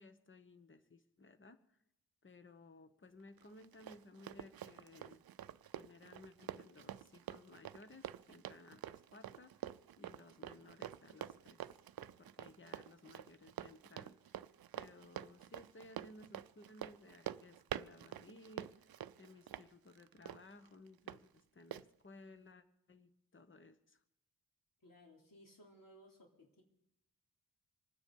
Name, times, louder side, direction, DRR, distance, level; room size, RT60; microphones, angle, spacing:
voice 1, 0.0-1.8 2.2-5.2 5.7-11.7 12.2-14.4 14.7-18.9 19.2-24.0, left 2 dB, 35° left, 10 dB, 1.1 m, -59 dB
Run, 3.4-21.2 21.7-21.8, right 10 dB, 80° right, 0.5 m, -48 dB
voice 2, 24.8-26.6, equal, 65° left, 0 dB, 3.6 m, -61 dB
25.5 x 9.8 x 5.4 m, 0.86 s
wide cardioid pair, 120°, 36 cm